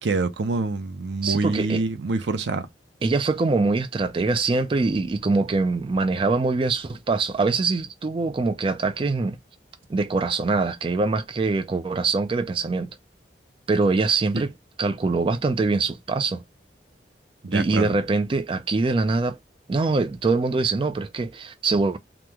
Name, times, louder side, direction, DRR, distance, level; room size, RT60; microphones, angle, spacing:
voice 1, 0.0-2.7 14.3-14.4 17.4-17.9, right 3 dB, 85° right, 0.6 m, -26 dB
voice 2, 1.2-1.8 3.0-9.4 9.9-12.9 13.7-14.5 14.8-16.4 17.5-19.4 19.7-22.0, right 3 dB, 30° right, 0.3 m, -23 dB
2.9 x 2.1 x 3.4 m
head